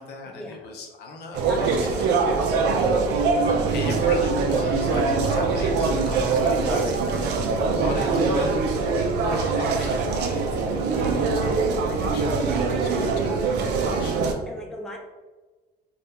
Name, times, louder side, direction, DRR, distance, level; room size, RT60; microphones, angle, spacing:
voice 1, 0.0-2.1 2.4-2.5 3.5-12.5 12.8-14.3, left 3 dB, 70° left, 1 dB, 0.6 m, -38 dB
sound 1, 1.3-14.3, right 4 dB, 85° right, 0.5 m, -23 dB
voice 2, 1.4-2.8 6.6-6.9 8.7-9.1 11.0-11.2 12.5-13.3 14.5-15.0, equal, 5° left, 0 dB, 0.5 m, -37 dB
2.8 x 2.4 x 3.4 m, 1.2 s
cardioid pair, 110°, 17 cm